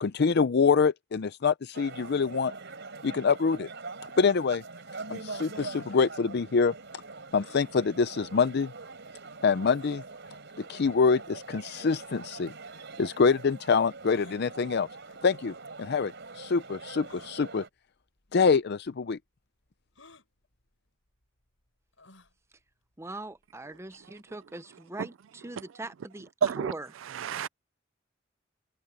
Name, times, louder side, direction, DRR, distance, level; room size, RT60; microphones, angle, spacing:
voice 1, 0.0-2.5 3.0-3.7 4.2-4.6 5.1-6.7 7.3-8.7 9.4-10.0 10.7-12.5 13.0-14.9 15.2-17.6 18.3-19.2, left 5 dB, 60° left, 0.5 m, -25 dB
sound 1, 1.7-17.7, right 3 dB, 65° right, 4.2 m, -44 dB
sound 2, 7.4-7.7 9.8-10.1 10.8-10.9 11.8-12.1 14.1-14.4 15.5-15.6 17.0-17.3 18.3-18.4 18.7-18.8 20.0-20.3 22.0-22.3, left 3 dB, 80° left, 7.6 m, -54 dB
voice 2, 23.0-26.9, right 2 dB, 15° right, 0.7 m, -41 dB
voice 3, 26.4-26.7 27.1-27.5, right 7 dB, 90° right, 0.4 m, -28 dB
head